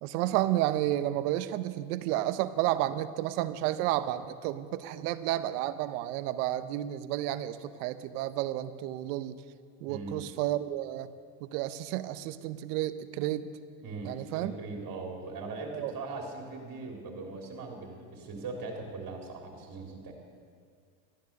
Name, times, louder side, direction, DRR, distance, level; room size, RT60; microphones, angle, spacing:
voice 1, 0.0-9.4 9.8-11.1 11.4-13.5 14.0-14.5 15.7-15.9, right 14 dB, 85° right, 14 dB, 0.8 m, -31 dB
voice 2, 9.9-10.3 13.8-20.1, right 3 dB, 50° right, 1 dB, 3.2 m, -40 dB
13.5 x 10.5 x 6.6 m, 2.1 s
supercardioid pair, 90°, 45 cm